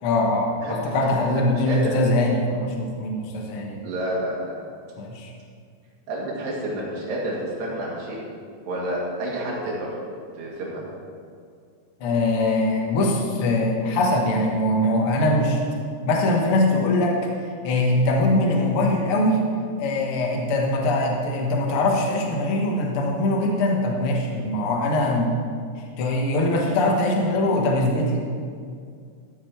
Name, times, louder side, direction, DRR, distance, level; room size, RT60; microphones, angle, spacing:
voice 1, 0.0-3.8 5.0-5.3 12.0-15.7 16.1-17.2 17.6-19.4 19.8-25.4 25.8-28.3, left 1 dB, 70° left, -1 dB, 1.3 m, -22 dB
voice 2, 0.6-0.9 1.6-1.9 3.8-4.6 6.1-8.2 8.7-9.9 10.4-10.8 24.3-24.4, right 1 dB, 80° right, -5 dB, 4.3 m, -29 dB
14.0 x 6.8 x 4.5 m, 2.2 s
omnidirectional pair, 4.7 m